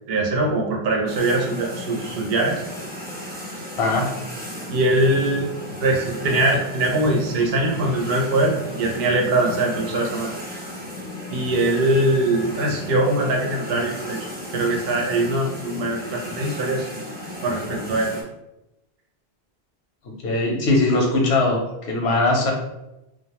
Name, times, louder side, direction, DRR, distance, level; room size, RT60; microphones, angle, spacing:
voice 1, 0.1-2.6 4.7-5.5 5.8-10.3 11.3-14.2 14.5-16.9 17.4-18.1, right 2 dB, 70° right, -1 dB, 0.8 m, -22 dB
sound 1, 1.1-18.2, equal, 15° right, 0.3 m, -35 dB
voice 2, 3.8-4.1 20.2-21.6 21.9-22.5, left 2 dB, 90° left, 0 dB, 0.9 m, -20 dB
2.3 x 2.0 x 2.8 m, 0.91 s
omnidirectional pair, 1.1 m